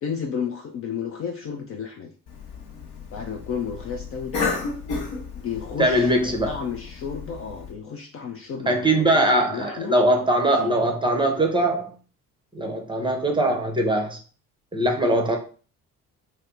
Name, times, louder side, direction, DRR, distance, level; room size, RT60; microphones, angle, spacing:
voice 1, 0.0-2.1 3.1-4.7 5.3-9.9 10.6-10.8 13.5-13.6, left 6 dB, 35° left, 0.4 m, -32 dB
Cough, 2.3-7.7, left 4 dB, 60° left, 1.0 m, -33 dB
voice 2, 5.8-6.5 8.7-11.9 12.5-14.2 14.7-15.4, right 1 dB, 10° right, 0.7 m, -21 dB
2.6 x 2.3 x 3.7 m
figure-of-eight pair, 50°, 44 cm